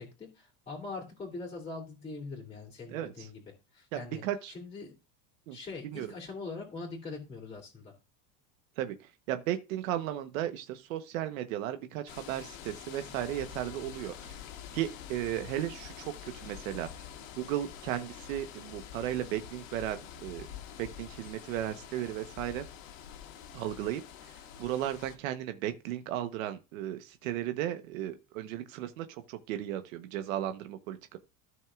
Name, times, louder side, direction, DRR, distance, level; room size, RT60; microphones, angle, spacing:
voice 1, 0.0-3.4 3.7-4.2 4.5-4.9 5.5-7.9, left 3 dB, 15° left, 2.9 m, -42 dB
voice 2, 2.9-3.3 3.9-4.5 5.5-5.6 5.8-6.1 8.8-14.4 14.7-17.1 17.4-20.5 20.8-22.6 23.5-31.2, right 12 dB, 90° right, 1.1 m, -35 dB
sound 1, 12.1-25.2, left 9 dB, 80° left, 2.0 m, -47 dB
13.5 x 6.4 x 2.4 m
supercardioid pair, 150°, 39 cm